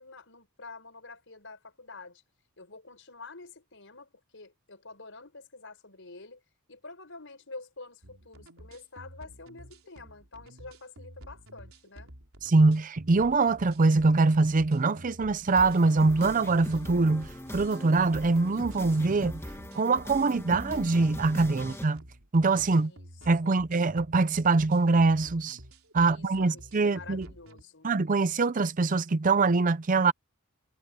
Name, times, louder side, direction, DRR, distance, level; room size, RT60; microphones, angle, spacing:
voice 1, 0.0-2.2 2.6-6.4 6.7-12.1 22.7-23.1 23.4-23.7 26.0-27.9, left 3 dB, 60° left, 7.0 m, -48 dB
sound 1, 8.0-27.6, right 1 dB, 70° right, 4.1 m, -50 dB
voice 2, 12.4-19.4 19.7-22.0 22.3-22.9 23.3-25.6 25.9-27.3 27.8-30.1, right 3 dB, 35° right, 0.5 m, -24 dB
sound 2, 15.5-21.9, left 1 dB, 10° left, 1.5 m, -41 dB
head